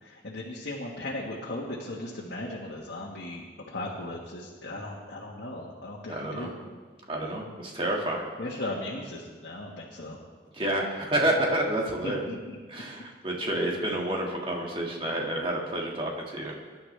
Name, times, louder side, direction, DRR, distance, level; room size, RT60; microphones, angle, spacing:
voice 1, 0.0-6.5 8.4-10.2 12.0-12.6, left 1 dB, 80° left, -3 dB, 1.6 m, -37 dB
voice 2, 6.1-6.5 7.1-8.3 10.5-12.3 12.7-16.6, right 1 dB, 30° right, -1 dB, 2.1 m, -29 dB
23.0 x 11.0 x 3.4 m, 1.5 s
head